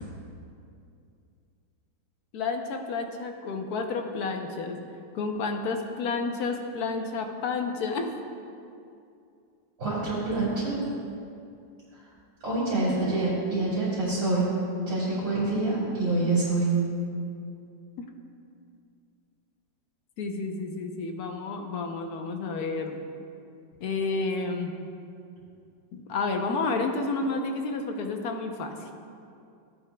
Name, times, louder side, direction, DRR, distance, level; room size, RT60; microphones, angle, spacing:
voice 1, 2.3-4.8 5.1-8.1 18.0-18.1 20.2-23.0 23.8-24.7 25.9-28.9, left 3 dB, 60° left, 4 dB, 1.2 m, -30 dB
voice 2, 9.8-10.8 11.9-12.0 12.4-14.5 14.9-16.7, right 2 dB, 75° right, -12 dB, 3.5 m, -26 dB
17.0 x 9.3 x 2.3 m, 2.5 s
omnidirectional pair, 2.0 m